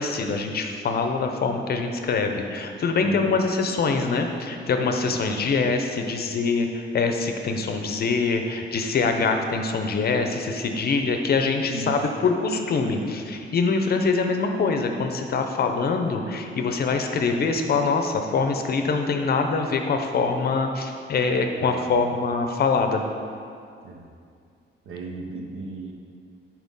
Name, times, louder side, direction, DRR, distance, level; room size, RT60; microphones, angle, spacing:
voice 1, 0.0-23.0, left 4 dB, 50° left, 5 dB, 0.6 m, -24 dB
voice 2, 3.0-3.5 5.2-5.4 9.4-9.5 11.7-12.0 21.6-22.1 23.8-24.0 24.8-25.9, right 2 dB, 80° right, 2 dB, 1.0 m, -36 dB
8.5 x 4.4 x 5.3 m, 2.3 s
wide cardioid pair, 175°, 21 cm